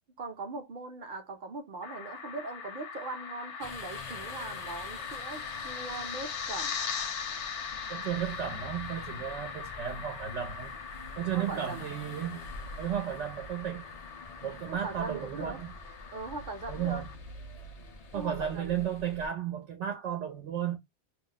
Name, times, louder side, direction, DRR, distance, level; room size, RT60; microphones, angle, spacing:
voice 1, 0.2-6.8 11.3-11.9 14.7-15.6 16.1-17.1 18.1-18.8, right 3 dB, 55° right, 0.6 m, -40 dB
sound 1, 1.8-17.1, left 6 dB, 80° left, 1.0 m, -40 dB
sound 2, 3.6-19.3, left 3 dB, 45° left, 0.5 m, -47 dB
voice 2, 7.9-10.7 11.2-12.4 12.8-13.9 14.4-15.7 16.7-17.1 18.1-20.8, right 9 dB, 85° right, 0.9 m, -34 dB
2.4 x 2.0 x 3.8 m
omnidirectional pair, 1.2 m